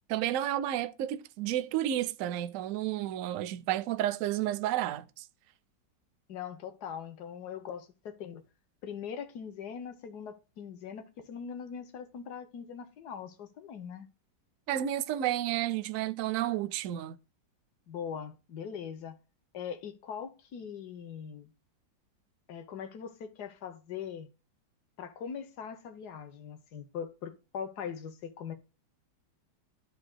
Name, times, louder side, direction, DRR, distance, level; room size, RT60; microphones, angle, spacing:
voice 1, 0.1-5.2 14.7-17.2, right 12 dB, 80° right, 0.7 m, -31 dB
voice 2, 6.3-8.4 8.8-14.1 17.9-19.2 19.5-21.5 22.5-24.3 25.0-28.5, left 7 dB, 65° left, 1.5 m, -41 dB
13.0 x 4.9 x 2.2 m
omnidirectional pair, 2.0 m